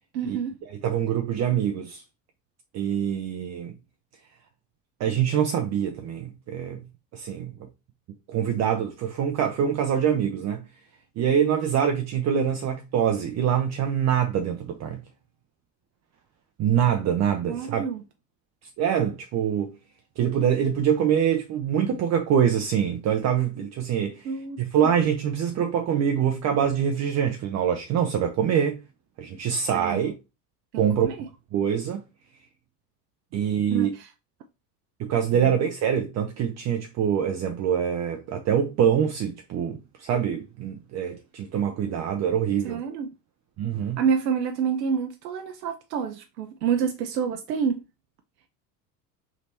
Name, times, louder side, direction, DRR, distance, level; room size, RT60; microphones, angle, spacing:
voice 1, 0.1-0.6 17.5-18.0 24.3-24.6 29.7-30.0 30.7-31.2 33.7-33.9 42.6-43.1 44.0-47.8, right 7 dB, 85° right, 0.7 m, -28 dB
voice 2, 0.7-2.0 2.7-3.7 5.0-6.8 7.1-7.5 8.3-10.7 11.2-15.0 16.6-17.9 18.8-19.7 20.2-28.8 29.2-30.1 30.8-31.1 31.5-32.0 33.3-33.9 35.0-42.8 43.6-44.0, right 8 dB, 35° right, 0.5 m, -24 dB
3.4 x 2.8 x 4.2 m
hypercardioid pair, 85°, 49 cm